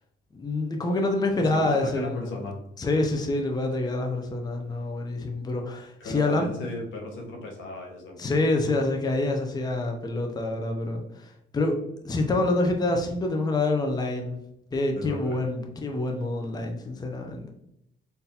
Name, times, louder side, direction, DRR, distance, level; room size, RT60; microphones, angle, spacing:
voice 1, 0.3-2.4 2.8-6.5 8.2-11.8 12.0-14.4 14.7-17.5, left 2 dB, 20° left, 3 dB, 0.5 m, -27 dB
voice 2, 1.4-2.6 6.0-8.2 14.9-15.4, left 2 dB, 80° left, 0 dB, 0.9 m, -36 dB
3.9 x 2.6 x 2.7 m, 0.79 s
cardioid pair, 90°, 20 cm